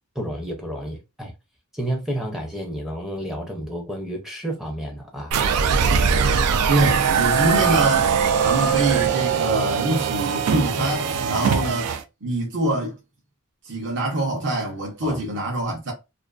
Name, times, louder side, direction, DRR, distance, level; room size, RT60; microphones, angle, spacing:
voice 1, 0.2-1.3 1.7-5.4 6.7-6.8 11.3-11.7 15.0-15.2, right 1 dB, ahead, 0.5 m, -31 dB
sound 1, 5.3-12.0, right 6 dB, 90° right, 0.3 m, -21 dB
voice 2, 6.7-8.1 8.4-11.9 12.2-13.0 13.7-15.9, right 2 dB, 55° right, 0.7 m, -24 dB
2.4 x 2.3 x 2.3 m
head